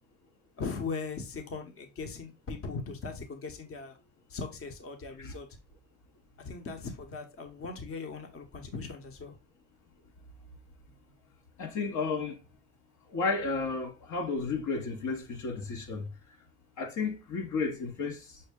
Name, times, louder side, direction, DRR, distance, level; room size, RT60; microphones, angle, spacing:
voice 1, 0.6-4.0 4.3-5.5 6.4-9.4, left 4 dB, 50° left, 0.9 m, -39 dB
voice 2, 11.6-12.4 13.1-16.1 16.8-18.4, left 4 dB, 75° left, 0.9 m, -32 dB
5.5 x 2.1 x 3.4 m
cardioid pair, 90°, 30 cm